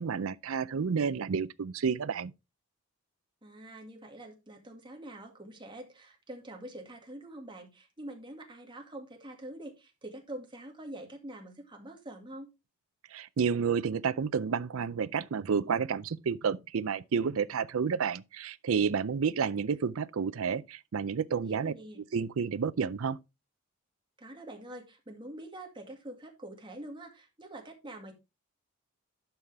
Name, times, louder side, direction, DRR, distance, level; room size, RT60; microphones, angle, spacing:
voice 1, 0.0-2.3 13.1-21.7 22.1-23.2, right 6 dB, 70° right, 0.5 m, -30 dB
voice 2, 3.4-12.5 21.3-22.0 24.2-28.1, right 1 dB, 25° right, 2.1 m, -45 dB
11.5 x 5.6 x 3.4 m
head